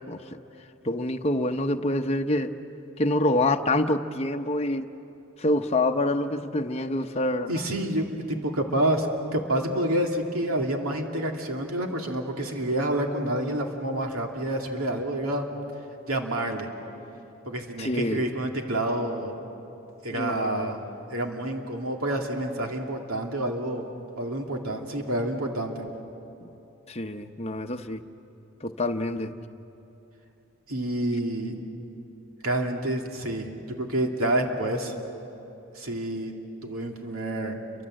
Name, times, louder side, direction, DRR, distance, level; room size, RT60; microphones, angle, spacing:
voice 1, 0.8-2.5 3.0-4.9 5.4-7.6 17.8-18.2 20.1-20.7 26.4-26.5 26.9-28.0 28.6-29.3, left 1 dB, 30° left, 5 dB, 0.9 m, -26 dB
voice 2, 7.5-9.1 9.3-15.5 16.1-16.7 17.5-19.3 20.0-23.9 24.2-25.8 30.7-31.5 32.4-33.5 33.8-34.9 35.7-36.3 36.6-37.6, right 1 dB, 90° right, 2 dB, 2.6 m, -28 dB
29.5 x 24.5 x 7.7 m, 2.9 s
head